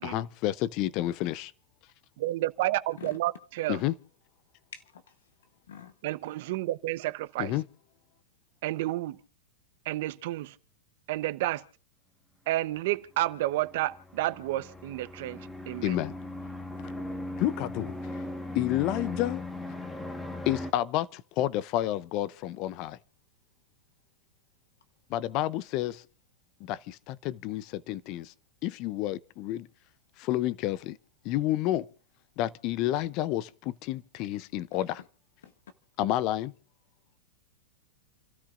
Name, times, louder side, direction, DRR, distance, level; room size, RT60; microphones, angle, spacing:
voice 1, 0.0-1.5 3.7-3.9 7.4-7.6 15.8-16.1 17.4-18.2 18.5-19.4 20.5-23.0 25.1-26.0 26.6-28.3 28.6-29.7 30.2-31.0 31.2-31.9 32.4-35.0 36.0-36.5, left 14 dB, 45° left, 0.6 m, -30 dB
voice 2, 2.2-3.8 6.0-7.5 8.6-9.2 9.8-10.5 11.1-11.6 12.5-16.0, right 16 dB, 60° right, 0.8 m, -30 dB
voice 3, 4.7-5.3 5.6-5.9 34.7-35.1 35.4-35.5, left 8 dB, 90° left, 1.0 m, -47 dB
sound 1, 13.4-20.7, left 2 dB, 10° left, 1.4 m, -38 dB
29.5 x 13.0 x 2.5 m
supercardioid pair, 140°, 0 cm